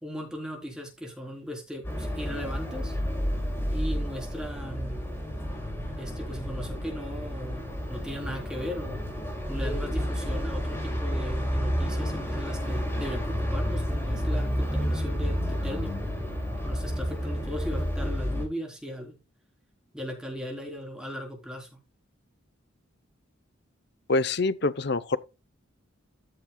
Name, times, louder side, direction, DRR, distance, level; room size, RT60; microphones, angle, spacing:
voice 1, 0.0-3.0 3.7-5.0 6.0-9.0 9.5-16.0 16.6-19.2 19.9-21.7, equal, 5° right, 3.8 m, -37 dB
sound 1, 1.8-18.5, equal, 10° left, 4.7 m, -30 dB
voice 2, 24.1-25.2, left 3 dB, 60° left, 0.7 m, -25 dB
14.0 x 7.5 x 2.3 m
head